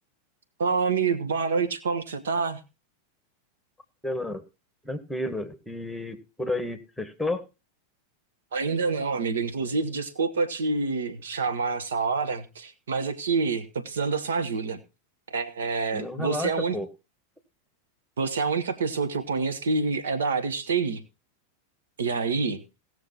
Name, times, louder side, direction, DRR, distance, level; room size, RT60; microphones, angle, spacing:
voice 1, 0.6-2.6 8.5-14.8 15.3-16.8 18.2-21.0 22.0-22.6, right 4 dB, 65° right, 9 dB, 1.4 m, -27 dB
voice 2, 4.0-4.4 4.8-7.5 15.9-16.9, left 2 dB, ahead, 9 dB, 1.6 m, -31 dB
17.5 x 6.7 x 4.2 m, 0.29 s
figure-of-eight pair, 90°, 0 cm